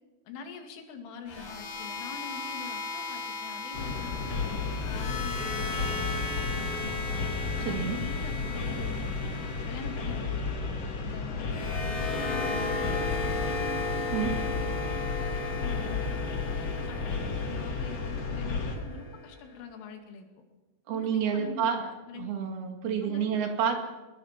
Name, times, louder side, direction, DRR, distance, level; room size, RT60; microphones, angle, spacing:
voice 1, 0.3-4.5 4.9-7.3 7.6-9.3 9.6-13.6 14.1-16.1 16.5-20.3 20.9-22.3 23.0-23.4 23.7-23.8, left 5 dB, 85° left, 4 dB, 5.0 m, -44 dB
sound 1, 1.3-19.4, left 3 dB, 65° left, 6.5 m, -36 dB
sound 2, 3.7-18.8, left 4 dB, 40° left, 2.6 m, -33 dB
voice 2, 7.7-8.0 14.1-14.3 20.9-21.9 22.2-23.7, right 7 dB, 55° right, 4 dB, 4.0 m, -29 dB
24.0 x 21.0 x 6.0 m, 1.2 s
omnidirectional pair, 5.5 m